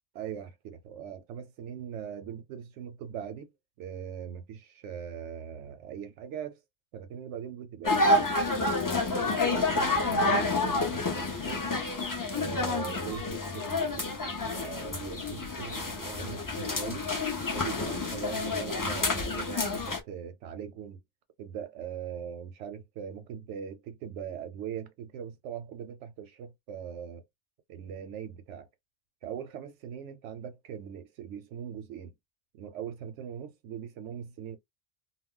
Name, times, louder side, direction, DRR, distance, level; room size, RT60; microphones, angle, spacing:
voice 1, 0.1-3.5 3.8-6.6 6.9-8.3 8.9-11.7 12.3-14.1 14.5-17.1 17.5-21.0 21.4-27.2 27.7-28.7 29.2-32.1 32.5-34.6, right 8 dB, 85° right, 0.9 m, -41 dB
sound 1, 7.8-20.0, left 2 dB, 30° left, 0.3 m, -29 dB
2.3 x 2.1 x 3.6 m
omnidirectional pair, 1.2 m